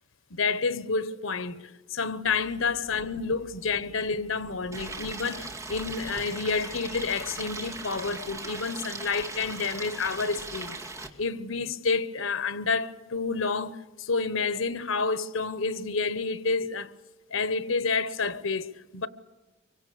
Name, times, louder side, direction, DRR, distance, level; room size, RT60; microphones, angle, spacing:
voice 1, 0.3-10.8 11.2-16.9 17.3-19.1, left 4 dB, 85° left, 1.2 m, -29 dB
sound 1, 2.2-8.3, right 1 dB, 35° right, 2.8 m, -54 dB
Stream, 4.7-11.1, right 3 dB, 15° right, 2.3 m, -38 dB
25.0 x 24.0 x 6.9 m
head